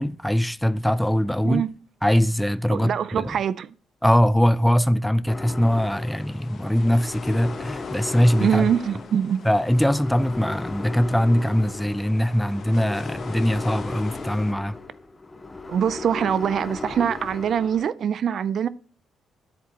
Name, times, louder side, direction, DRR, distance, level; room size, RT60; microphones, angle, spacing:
voice 1, 0.0-1.6 2.0-3.3 4.0-8.7 9.4-14.8, equal, 5° left, 0.4 m, -21 dB
voice 2, 2.7-3.7 8.4-9.4 15.7-18.7, right 8 dB, 60° right, 0.5 m, -23 dB
sound 1, 5.3-17.8, left 3 dB, 20° left, 0.9 m, -37 dB
sound 2, 5.7-14.5, left 6 dB, 60° left, 1.0 m, -42 dB
10.0 x 7.9 x 2.9 m
cardioid pair, 90°, 0 cm